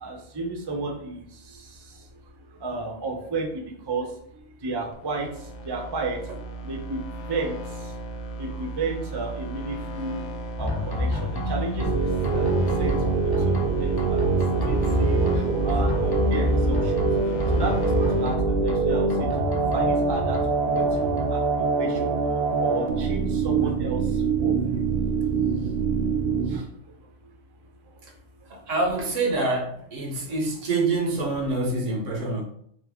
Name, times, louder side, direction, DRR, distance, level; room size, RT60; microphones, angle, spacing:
voice 1, 0.0-1.2 2.6-3.5 3.9-4.1 4.6-5.3 5.6-6.2 6.6-7.0 7.3-7.6 8.4-10.2 10.6-12.1 12.3-12.5 12.8-13.2 13.5-13.6 13.8-14.2 14.7-17.1 17.5-21.4 21.8-22.1 22.6-24.0 24.4-24.9 26.5-26.6, right 3 dB, 30° right, 2 dB, 0.5 m, -32 dB
sound 1, 4.9-18.3, right 2 dB, 70° left, 0.9 m, -35 dB
sound 2, 10.6-11.9 12.2-13.6 14.0-15.4 15.7-17.1 17.4-18.8 19.1-20.4 20.8-21.3, left 2 dB, 30° left, 0.4 m, -28 dB
sound 3, 11.8-26.6, right 4 dB, 65° right, 0.7 m, -24 dB
voice 2, 28.5-32.4, right 2 dB, 80° right, 1 dB, 1.3 m, -26 dB
3.9 x 2.9 x 3.4 m, 0.67 s
omnidirectional pair, 1.3 m